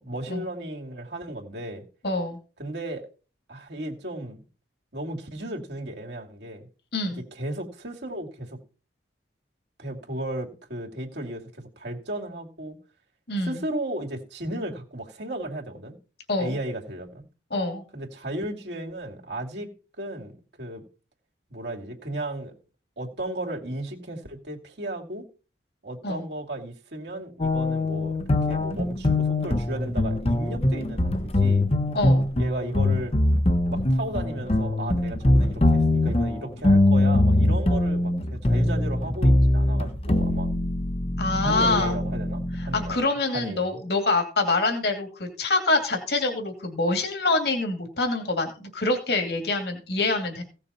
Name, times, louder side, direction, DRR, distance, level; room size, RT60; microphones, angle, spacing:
voice 1, 0.0-1.8 2.6-3.0 3.5-4.4 4.9-6.7 7.1-8.6 9.8-12.8 13.4-15.9 16.4-17.2 17.9-20.8 21.5-22.5 23.0-25.2 25.8-28.2 28.5-31.6 32.3-33.1 33.7-40.5 41.4-43.8, right 1 dB, 75° right, 2.6 m, -35 dB
voice 2, 2.0-2.4 6.9-7.2 13.3-13.6 16.3-16.6 17.5-17.8 26.0-26.2 31.9-32.3 41.2-41.9 42.7-50.4, left 2 dB, 65° left, 2.6 m, -25 dB
sound 1, 27.4-43.0, left 1 dB, 35° left, 0.8 m, -22 dB
16.5 x 6.7 x 4.3 m
head